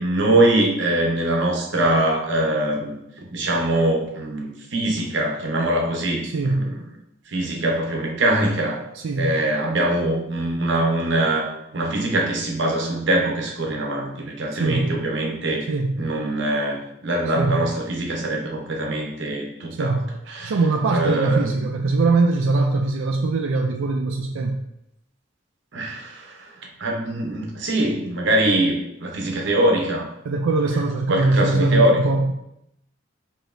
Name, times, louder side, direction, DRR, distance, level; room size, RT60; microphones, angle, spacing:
voice 1, 0.0-3.0 3.3-6.8 7.3-8.8 9.2-15.7 16.0-20.0 20.3-20.5 20.9-21.6 25.7-30.1 31.1-32.0, right 1 dB, 60° right, 0 dB, 0.8 m, -23 dB
voice 2, 6.2-6.7 8.9-9.3 14.6-15.0 15.7-15.9 17.4-17.5 19.8-20.0 20.4-24.6 30.3-32.3, right 3 dB, 80° right, 2 dB, 0.4 m, -21 dB
5.0 x 2.8 x 2.5 m, 0.82 s
head